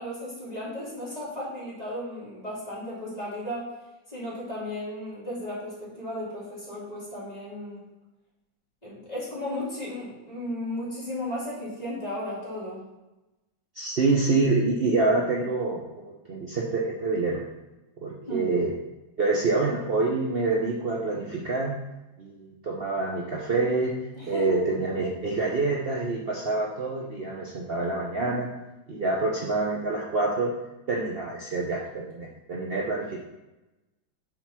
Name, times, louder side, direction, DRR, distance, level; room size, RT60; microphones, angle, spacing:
voice 1, 0.0-3.7 4.1-7.8 8.8-12.8 18.2-18.5 24.2-24.6, left 1 dB, 20° left, -8 dB, 2.7 m, -35 dB
voice 2, 13.8-17.4 18.0-18.7 19.2-21.7 22.2-23.9 24.3-28.5 28.9-30.5 30.9-33.2, right 3 dB, 70° right, -3 dB, 0.5 m, -26 dB
6.7 x 4.0 x 5.7 m, 1.0 s
omnidirectional pair, 2.2 m